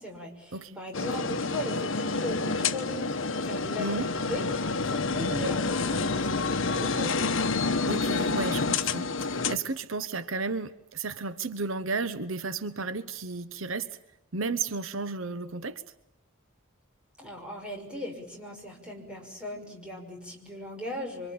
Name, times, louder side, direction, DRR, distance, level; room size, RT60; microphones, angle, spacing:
voice 1, 0.0-7.2 17.2-21.3, left 1 dB, 5° right, 6.0 m, -38 dB
voice 2, 0.5-1.1 3.8-4.1 7.9-14.0 14.3-15.8, right 4 dB, 75° right, 1.1 m, -33 dB
sound 1, 0.9-9.6, left 4 dB, 65° left, 1.3 m, -28 dB
26.0 x 25.0 x 8.7 m
head